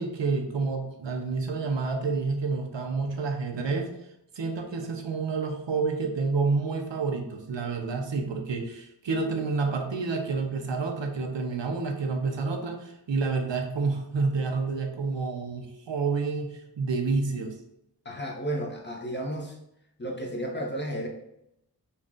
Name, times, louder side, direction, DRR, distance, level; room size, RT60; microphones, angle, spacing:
voice 1, 0.0-3.9 4.4-17.5, right 4 dB, 90° right, 3 dB, 0.7 m, -29 dB
voice 2, 18.0-19.6 20.0-21.1, right 1 dB, 25° left, 0 dB, 0.8 m, -32 dB
4.0 x 2.3 x 3.6 m, 0.79 s
wide cardioid pair, 45°, 43 cm